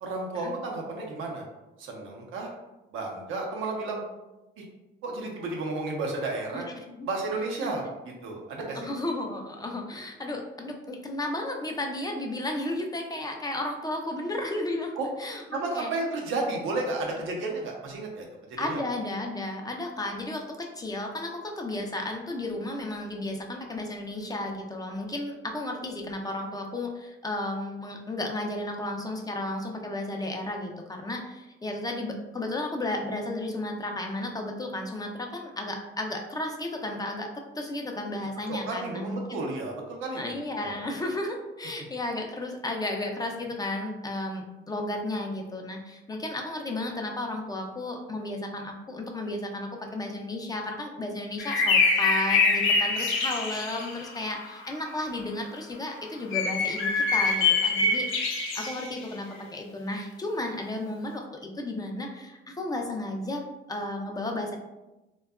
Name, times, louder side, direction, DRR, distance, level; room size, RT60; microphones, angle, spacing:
voice 1, 0.0-1.5 1.8-2.5 2.9-4.0 4.6-4.7 5.0-6.6 7.1-8.9 15.0-15.1 15.5-18.8 38.5-40.8, right 2 dB, 85° right, 0 dB, 0.6 m, -32 dB
voice 2, 6.5-7.1 7.6-7.7 8.7-15.9 18.6-30.7 31.0-37.3 37.6-39.4 40.1-64.6, left 1 dB, 20° left, 2 dB, 0.4 m, -33 dB
sound 1, 51.4-54.5 56.3-59.0, left 4 dB, 80° left, 0.5 m, -24 dB
2.7 x 2.2 x 2.3 m, 1.0 s
cardioid pair, 90°, 20 cm